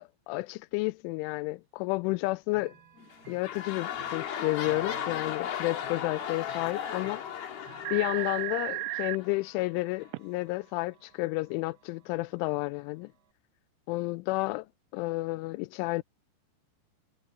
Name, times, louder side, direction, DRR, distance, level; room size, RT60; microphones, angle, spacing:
voice 1, 0.0-2.7 3.3-7.2 7.9-13.1 13.9-14.7 14.9-16.0, left 22 dB, 90° left, 3.0 m, -31 dB
Chime / Clock, 2.5-13.3, right 9 dB, 60° right, 6.1 m, -54 dB
sound 1, 3.0-9.3 10.0-10.1, left 9 dB, 60° left, 3.5 m, -36 dB
sound 2, 7.5-7.6 7.8-9.2 10.1-10.2, right 21 dB, 85° right, 3.0 m, -33 dB
omnidirectional pair, 5.4 m